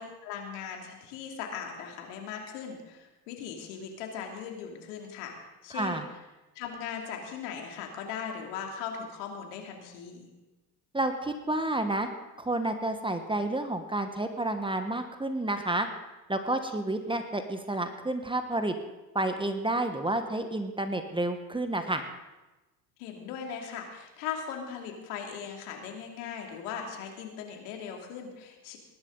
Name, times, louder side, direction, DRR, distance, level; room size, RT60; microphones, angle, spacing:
voice 1, 0.0-5.3 5.6-6.0 6.5-10.3 23.0-28.8, left 7 dB, 70° left, 2 dB, 2.7 m, -39 dB
voice 2, 5.7-6.0 10.9-12.1 12.4-15.9 16.3-18.7 19.1-22.0, right 2 dB, 10° right, 7 dB, 1.3 m, -30 dB
19.5 x 11.5 x 3.9 m, 1.1 s
hypercardioid pair, 75°, 47 cm